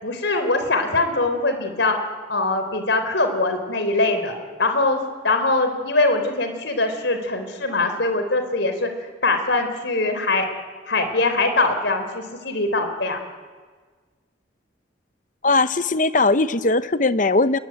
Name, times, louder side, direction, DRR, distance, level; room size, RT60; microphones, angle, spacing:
voice 1, 0.0-2.0 2.3-4.3 4.6-8.9 9.2-10.5 10.9-13.2, left 2 dB, 70° left, 7 dB, 4.1 m, -22 dB
voice 2, 15.4-17.6, left 3 dB, 45° left, 13 dB, 0.9 m, -19 dB
30.0 x 21.5 x 9.2 m, 1.5 s
head